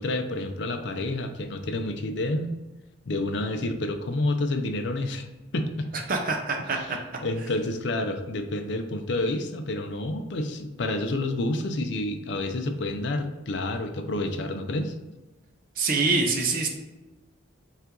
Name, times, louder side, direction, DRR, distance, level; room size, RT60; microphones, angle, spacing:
voice 1, 0.0-2.5 3.1-5.2 5.5-5.9 7.2-14.9, left 2 dB, 60° left, 6 dB, 0.5 m, -29 dB
voice 2, 6.1-7.0 15.8-16.7, right 3 dB, 45° right, 2 dB, 0.5 m, -25 dB
5.5 x 2.4 x 3.7 m, 1.1 s
head